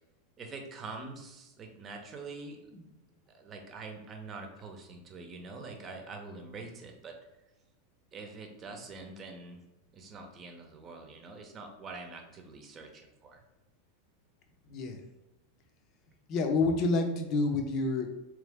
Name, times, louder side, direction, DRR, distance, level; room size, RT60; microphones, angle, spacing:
voice 1, 0.4-2.6 3.3-7.1 8.1-9.6 9.9-13.4, right 3 dB, 30° right, 4 dB, 0.9 m, -45 dB
voice 2, 14.7-15.0 16.3-18.2, left 3 dB, 45° left, 4 dB, 0.7 m, -28 dB
3.7 x 3.2 x 3.5 m, 0.95 s
hypercardioid pair, 110°, 0 cm